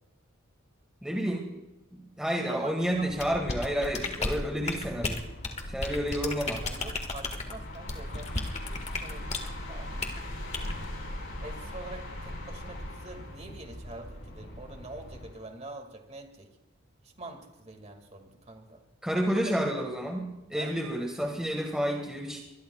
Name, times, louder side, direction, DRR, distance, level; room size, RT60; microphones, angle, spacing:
voice 1, 1.0-1.5 1.9-5.2 5.7-6.6 19.0-22.4, equal, 5° right, 1 dB, 1.7 m, -30 dB
voice 2, 2.5-3.1 6.6-10.7 11.4-16.5 17.0-18.8 19.2-19.3 20.6-20.8, right 2 dB, 35° right, 4 dB, 2.2 m, -45 dB
sound 1, 2.9-15.5, left 1 dB, 70° left, 5.7 m, -41 dB
sound 2, 3.2-9.5 10.0-10.2 10.5-10.7, left 3 dB, 35° left, 1.7 m, -34 dB
24.0 x 21.0 x 2.4 m, 0.99 s
head